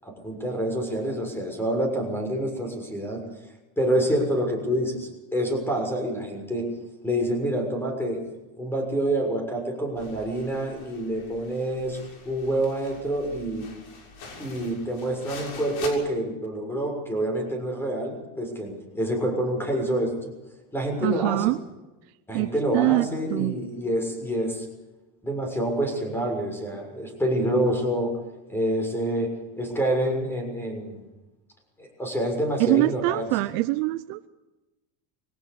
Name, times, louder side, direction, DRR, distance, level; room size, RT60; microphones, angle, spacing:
voice 1, 0.0-3.2 3.8-6.7 7.0-8.2 8.6-13.7 14.4-20.3 20.7-21.4 22.3-24.7 25.2-28.2 28.5-31.1 31.8-33.2, right 1 dB, 5° left, 3 dB, 6.5 m, -27 dB
sound 1, 10.0-15.9, left 4 dB, 60° left, 6.8 m, -44 dB
voice 2, 21.0-21.6 22.3-23.5 32.6-34.3, right 19 dB, 90° right, 10 dB, 0.9 m, -24 dB
23.0 x 18.0 x 7.1 m, 1.1 s
cardioid pair, 155°, 42 cm